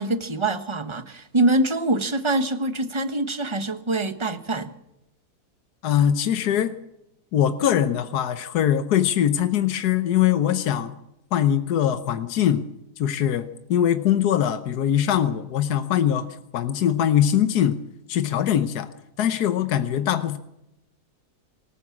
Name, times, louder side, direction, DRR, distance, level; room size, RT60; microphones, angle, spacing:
voice 1, 0.0-4.7, right 2 dB, 20° right, 9 dB, 1.1 m, -24 dB
voice 2, 5.8-6.7 7.3-10.9 11.3-12.7 13.0-16.3 16.5-17.8 18.1-18.9 19.2-20.4, left 10 dB, 80° left, 9 dB, 1.5 m, -22 dB
24.5 x 14.5 x 7.3 m, 0.86 s
omnidirectional pair, 1.7 m